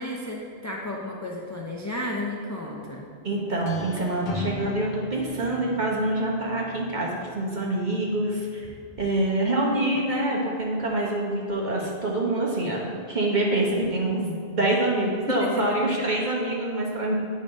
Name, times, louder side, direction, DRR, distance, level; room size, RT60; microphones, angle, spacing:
voice 1, 0.0-3.1 9.4-9.9 15.0-15.1 15.4-16.1, left 1 dB, 25° left, -2 dB, 0.3 m, -33 dB
voice 2, 3.2-8.7 9.0-17.1, right 1 dB, 45° right, -3 dB, 1.2 m, -26 dB
sound 1, 3.5-9.2, left 1 dB, 65° left, 1.0 m, -39 dB
9.0 x 3.2 x 5.2 m, 2.2 s
omnidirectional pair, 1.2 m